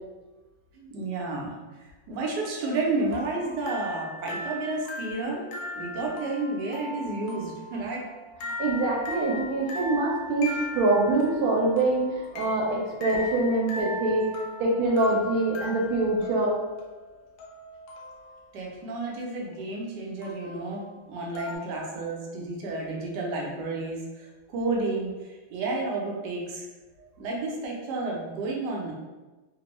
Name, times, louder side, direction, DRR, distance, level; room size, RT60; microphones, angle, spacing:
voice 1, 0.7-1.5 2.1-5.4 5.8-8.1 18.5-26.7 27.2-28.9, right 2 dB, 65° right, -2 dB, 1.1 m, -31 dB
sound 1, 2.1-18.5 20.2-20.7 21.3-21.6, left 1 dB, 70° left, 1.2 m, -39 dB
voice 2, 8.4-14.2 14.6-16.6, right 2 dB, 85° right, -2 dB, 1.4 m, -24 dB
3.4 x 2.2 x 3.0 m, 1.2 s
omnidirectional pair, 2.3 m